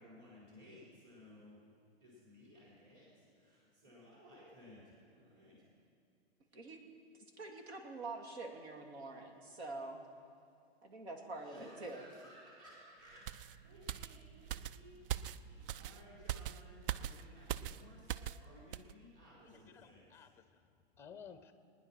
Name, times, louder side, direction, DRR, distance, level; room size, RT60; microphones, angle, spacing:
voice 1, 0.0-1.6 2.0-5.6 11.3-13.3 13.6-15.0 15.3-20.1, equal, 30° right, -6 dB, 4.6 m, -58 dB
voice 2, 7.4-10.0 10.8-12.1, right 2 dB, 80° right, 3 dB, 2.4 m, -46 dB
sound 1, 13.3-18.4 18.7-18.9, right 11 dB, 60° right, 0.5 m, -42 dB
voice 3, 19.4-21.5, left 7 dB, 10° left, 10 dB, 0.6 m, -56 dB
20.0 x 10.0 x 5.9 m, 2.3 s
hypercardioid pair, 140°, 32 cm